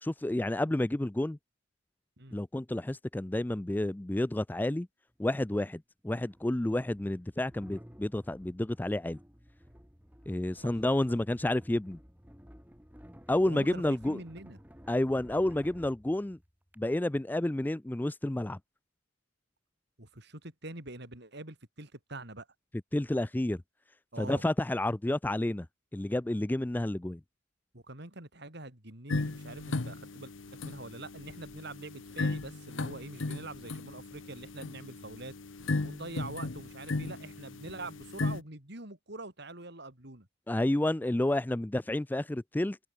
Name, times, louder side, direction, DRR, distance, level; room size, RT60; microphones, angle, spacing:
voice 1, 0.0-1.4 2.3-4.9 5.2-9.2 10.3-12.0 13.3-14.2 14.9-16.4 16.8-18.6 22.9-23.6 24.2-25.7 25.9-27.2 40.5-42.8, left 1 dB, 10° left, 0.4 m, -30 dB
sound 1, 5.1-5.2 6.2-16.8, equal, 10° right, 6.0 m, -54 dB
voice 2, 13.5-14.6 20.0-22.5 24.1-24.4 27.7-35.3 35.8-40.3, right 2 dB, 60° right, 5.1 m, -45 dB
sound 2, 29.1-38.4, left 2 dB, 75° left, 1.0 m, -36 dB
head